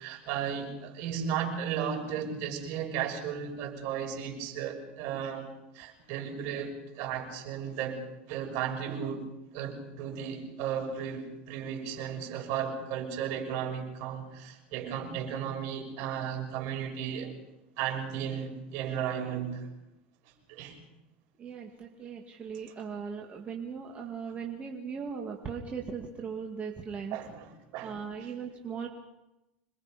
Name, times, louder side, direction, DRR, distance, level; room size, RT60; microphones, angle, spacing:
voice 1, 0.0-5.5 5.7-9.2 9.5-17.3 17.8-19.7 20.5-20.8 27.1-28.3, right 8 dB, 60° right, 2 dB, 6.5 m, -35 dB
voice 2, 21.4-27.2 27.8-28.9, right 6 dB, 25° right, 0 dB, 2.3 m, -38 dB
26.5 x 22.0 x 5.3 m, 0.94 s
supercardioid pair, 135°, 5 cm